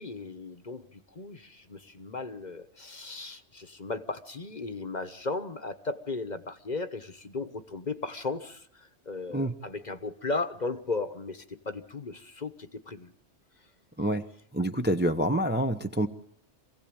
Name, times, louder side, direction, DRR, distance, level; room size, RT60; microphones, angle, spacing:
voice 1, 0.0-13.1, left 3 dB, 40° left, 10 dB, 1.2 m, -36 dB
voice 2, 14.5-16.1, right 1 dB, 10° right, 6 dB, 0.8 m, -27 dB
26.5 x 16.5 x 8.8 m, 0.72 s
omnidirectional pair, 1.3 m